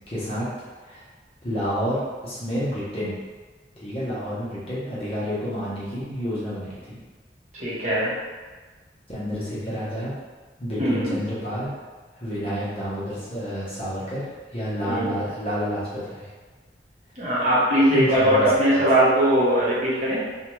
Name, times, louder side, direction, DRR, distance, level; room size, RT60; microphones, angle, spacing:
voice 1, 0.1-0.5 0.8-1.0 1.4-3.2 3.8-7.0 9.1-10.1 10.6-11.7 12.1-16.3 17.9-18.8, equal, 35° left, -9 dB, 0.9 m, -29 dB
voice 2, 7.6-8.1 10.8-11.1 14.8-15.1 17.2-20.2, right 1 dB, 40° right, -9 dB, 0.8 m, -20 dB
2.6 x 2.3 x 3.0 m, 1.4 s
head